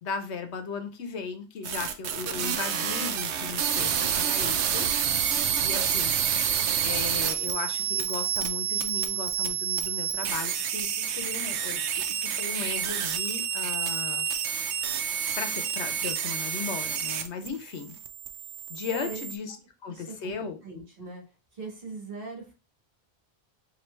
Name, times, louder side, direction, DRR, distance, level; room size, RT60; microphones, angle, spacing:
voice 1, 0.0-4.9 5.6-6.2 6.8-14.3 15.4-18.0 18.7-19.6 19.8-20.6, left 5 dB, 85° left, 1.0 m, -36 dB
sound 1, 1.6-17.5 17.8-19.4, right 8 dB, 85° right, 0.9 m, -29 dB
voice 2, 18.9-19.2 19.9-20.3 20.6-21.2 21.5-22.5, right 3 dB, 55° right, 1.6 m, -40 dB
4.5 x 2.8 x 3.1 m
omnidirectional pair, 1.1 m